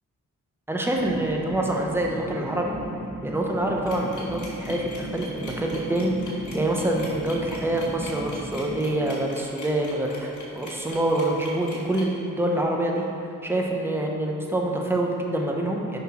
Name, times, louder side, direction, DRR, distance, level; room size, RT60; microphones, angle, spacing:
voice 1, 0.7-2.7 3.2-13.0 13.4-16.0, right 1 dB, 5° right, 0 dB, 1.0 m, -26 dB
sound 1, 1.0-8.8, right 1 dB, 30° right, 1.1 m, -36 dB
sound 2, 3.9-12.0, left 2 dB, 60° left, 1.7 m, -42 dB
5.9 x 5.5 x 4.3 m, 2.5 s
cardioid pair, 55°, 34 cm